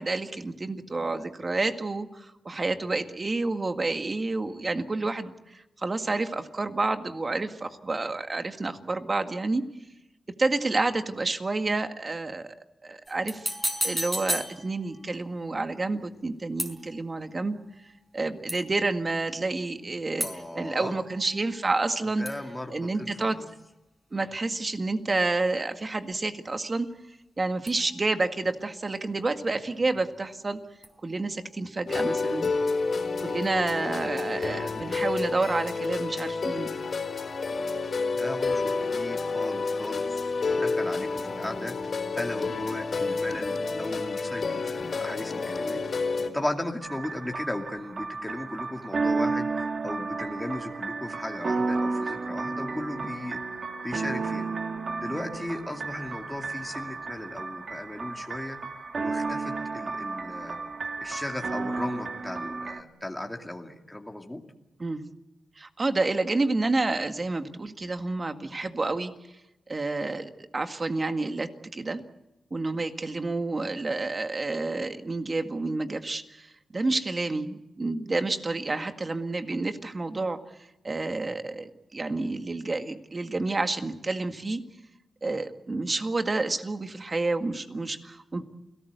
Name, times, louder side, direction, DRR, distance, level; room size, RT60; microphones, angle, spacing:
voice 1, 0.0-9.6 10.4-12.6 12.8-13.5 13.8-17.6 18.1-20.3 20.5-22.2 22.7-23.4 24.1-26.9 27.4-30.6 31.0-32.5 33.2-36.7 64.8-65.1 65.6-69.1 69.7-72.0 72.5-80.4 80.8-84.6 85.2-88.4, right 3 dB, 35° right, 7 dB, 1.9 m, -29 dB
sound 1, 13.1-15.2 16.6-17.3 18.5-19.0 20.2-22.0 22.3-23.4 27.7-28.4 30.8-31.5 32.4-32.5, equal, 10° right, 5.3 m, -35 dB
voice 2, 20.2-21.0 22.0-23.5 38.1-41.8 42.1-45.8 46.3-54.5 55.0-60.6 61.0-64.4, left 1 dB, 10° left, 1 dB, 2.4 m, -36 dB
sound 2, 31.9-46.3, left 4 dB, 55° left, 4.2 m, -29 dB
sound 3, 46.8-62.8, right 3 dB, 55° right, 1.9 m, -32 dB
29.0 x 18.0 x 8.2 m, 0.95 s
cardioid pair, 80°, 0 cm